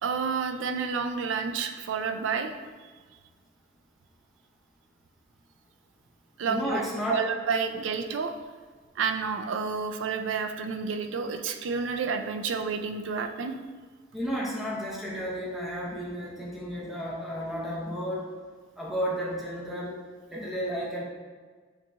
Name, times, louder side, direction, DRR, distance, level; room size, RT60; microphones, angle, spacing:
voice 1, 0.0-2.5 6.4-6.8 7.1-8.3 9.0-13.5, right 5 dB, 80° right, 7 dB, 0.4 m, -30 dB
voice 2, 6.5-7.3 14.1-18.3 18.8-20.0 20.3-21.0, equal, ahead, -5 dB, 0.9 m, -32 dB
7.2 x 2.9 x 2.4 m, 1.5 s
head